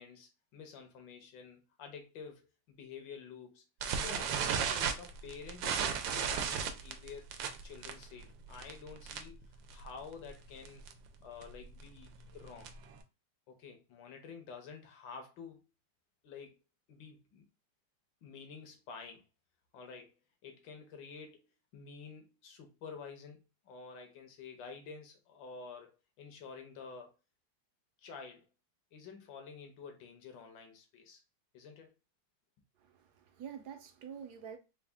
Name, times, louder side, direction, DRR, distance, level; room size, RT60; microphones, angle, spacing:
voice 1, 0.0-3.6 3.9-7.3 7.6-10.9 11.2-12.7 13.5-15.7 16.2-16.6 16.9-17.5 18.2-19.2 19.7-20.1 20.4-21.4 21.7-25.9 26.2-27.1 28.0-28.4 28.9-31.2 31.5-31.9, left 5 dB, 90° left, 1.6 m, -50 dB
sound 1, 3.8-9.4 9.7-10.0 10.3-10.4 10.7-10.9 11.4-13.0, right 7 dB, 85° right, 1.4 m, -35 dB
voice 2, 32.8-34.6, right 8 dB, 70° right, 1.2 m, -47 dB
4.1 x 2.4 x 3.5 m
omnidirectional pair, 2.0 m